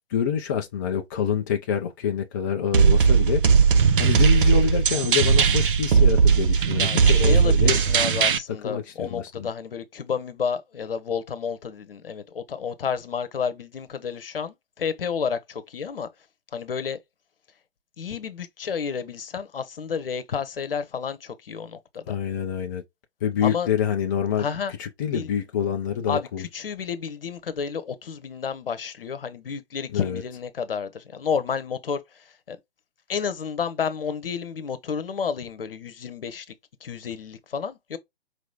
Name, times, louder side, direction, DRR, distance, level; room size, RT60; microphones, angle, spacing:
voice 1, 0.1-3.4 4.0-7.8 8.6-9.5 22.1-22.8 23.2-24.5 24.8-26.5 29.9-30.2, left 8 dB, 20° left, 0.4 m, -26 dB
sound 1, 2.7-8.4, right 6 dB, 55° right, 0.7 m, -18 dB
voice 2, 6.8-16.1 16.5-17.0 18.0-22.2 23.4-23.7 24.4-24.7 25.1-25.3 26.1-32.6 33.1-36.5 36.8-38.0, left 6 dB, 60° left, 1.0 m, -31 dB
4.8 x 3.1 x 2.3 m
figure-of-eight pair, 125°, 31 cm